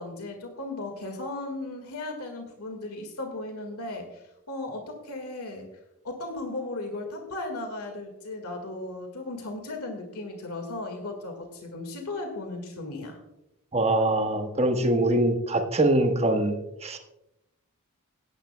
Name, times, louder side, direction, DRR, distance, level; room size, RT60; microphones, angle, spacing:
voice 1, 0.0-5.7 6.0-13.2, left 2 dB, 85° left, 4 dB, 1.8 m, -36 dB
voice 2, 13.7-16.6 16.8-17.0, right 1 dB, 30° right, 4 dB, 1.2 m, -23 dB
17.0 x 10.0 x 2.2 m, 0.89 s
head